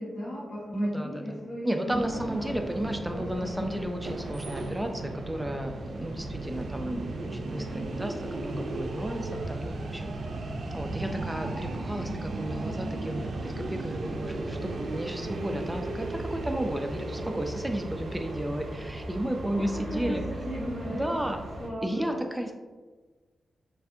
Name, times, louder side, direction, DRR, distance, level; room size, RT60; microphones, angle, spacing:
voice 1, 0.0-2.7 3.1-3.7 19.5-19.6 19.9-21.0 21.6-22.2, equal, 75° left, -11 dB, 1.4 m, -36 dB
voice 2, 0.7-10.1 10.7-20.2 20.9-21.4 21.8-22.5, right 1 dB, 10° right, 4 dB, 0.4 m, -33 dB
sound 1, 1.9-21.7, right 2 dB, 70° right, 0.5 m, -36 dB
6.5 x 2.6 x 2.6 m, 1.3 s
cardioid pair, 80°, 0 cm